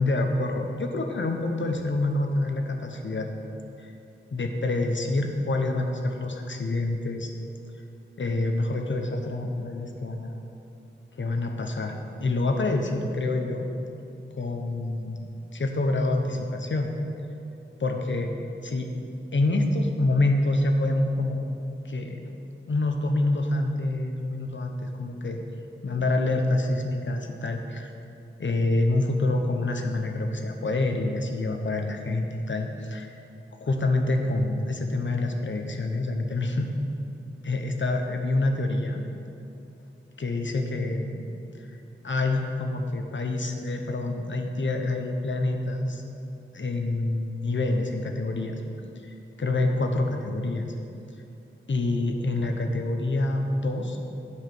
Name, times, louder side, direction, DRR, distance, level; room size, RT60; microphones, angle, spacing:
voice 1, 0.0-3.3 3.8-3.9 4.3-7.3 8.2-10.4 11.2-13.7 14.4-16.9 17.8-18.3 18.6-18.9 19.3-21.4 21.8-22.2 22.7-25.4 25.8-27.9 28.4-33.1 33.6-36.7 37.4-39.0 40.2-41.3 41.6-41.8 42.0-46.0 46.5-48.6 49.0-50.7 51.7-54.0, left 2 dB, 65° left, 3 dB, 1.0 m, -27 dB
9.4 x 4.8 x 7.7 m, 2.7 s
wide cardioid pair, 60°, 20 cm